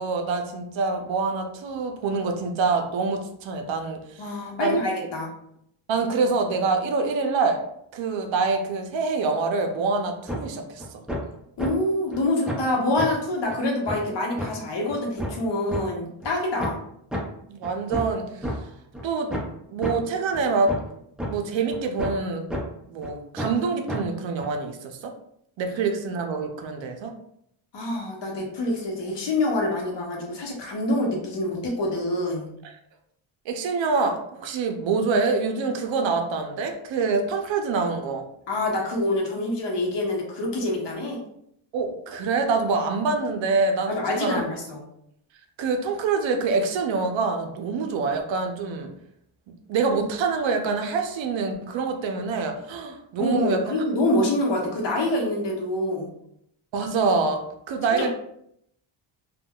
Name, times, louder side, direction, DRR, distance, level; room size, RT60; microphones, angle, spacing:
voice 1, 0.0-4.8 5.9-7.6 7.9-10.8 17.5-18.6 19.0-19.3 19.7-20.8 21.3-22.4 22.9-25.1 25.6-27.1 33.5-38.3 41.7-44.4 45.6-48.9 49.7-53.8 56.7-58.1, right 4 dB, 70° right, 4 dB, 0.6 m, -25 dB
voice 2, 4.2-5.3 11.6-16.8 27.7-32.5 38.5-41.2 43.9-44.8 53.2-56.1 57.9-58.1, left 1 dB, 60° left, 0 dB, 0.9 m, -26 dB
sound 1, 10.3-10.4 10.8-11.2 11.6-11.7 12.1-12.2 12.5-12.7 13.0-13.1 13.5-13.6 13.9-14.0 14.4-14.5 14.9-15.8 16.2-16.3 16.6-16.8 17.1-17.2 17.6-18.5 18.9-19.0 19.3-19.5 19.8-19.9 20.3-20.4 20.7-20.9 21.2-21.3 21.7-22.2 22.5-22.6 23.0-23.1 23.4-23.6 23.9-24.0 24.4-24.5, equal, ahead, 0.3 m, -29 dB
3.5 x 2.3 x 2.2 m, 0.74 s
wide cardioid pair, 140°, 48 cm